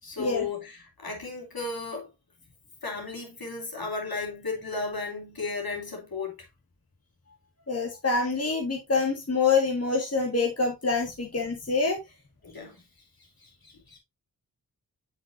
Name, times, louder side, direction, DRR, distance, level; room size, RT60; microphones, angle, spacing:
voice 1, 0.0-2.1 2.8-6.5 12.4-12.8 13.4-14.0, left 3 dB, 60° left, 3.0 m, -35 dB
voice 2, 7.7-12.0, left 4 dB, 40° left, 1.7 m, -26 dB
7.2 x 6.7 x 2.5 m
cardioid pair, 50°, 40 cm